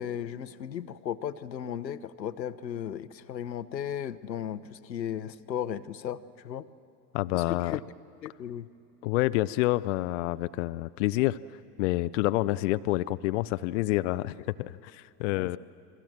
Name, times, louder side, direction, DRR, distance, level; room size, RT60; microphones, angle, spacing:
voice 1, 0.0-6.7 7.3-7.8 8.2-8.7 15.3-15.5, left 9 dB, 80° left, 14 dB, 0.9 m, -35 dB
voice 2, 7.1-7.8 9.0-11.4 11.8-15.6, left 17 dB, 50° left, 13 dB, 0.6 m, -28 dB
28.5 x 22.0 x 7.5 m, 2.7 s
figure-of-eight pair, 85°, 50 cm